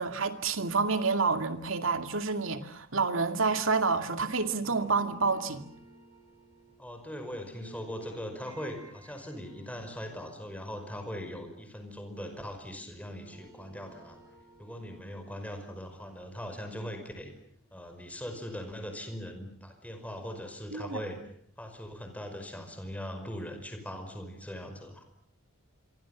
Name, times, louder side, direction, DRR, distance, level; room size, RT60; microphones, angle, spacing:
voice 1, 0.0-5.7 20.7-21.0, right 4 dB, 75° right, 2.4 m, -28 dB
sound 1, 4.7-12.8 13.1-18.0, right 2 dB, 20° right, 7.7 m, -56 dB
voice 2, 6.8-14.2 14.6-17.3 17.7-21.2 21.6-25.0, equal, 5° left, 5.3 m, -40 dB
27.5 x 24.5 x 7.3 m
head